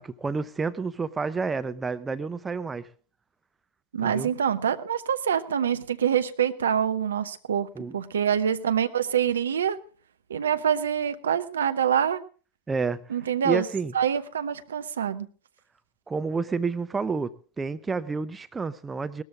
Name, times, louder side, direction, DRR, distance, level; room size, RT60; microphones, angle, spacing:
voice 1, 0.0-2.9 4.0-4.3 7.8-7.9 12.7-13.2 13.4-13.9 16.1-19.2, right 4 dB, 15° right, 13 dB, 0.6 m, -30 dB
voice 2, 3.9-9.8 10.3-12.2 13.1-13.7 13.9-15.3, right 8 dB, 65° right, 10 dB, 0.9 m, -25 dB
18.5 x 13.0 x 3.6 m, 0.40 s
figure-of-eight pair, 90°, 0 cm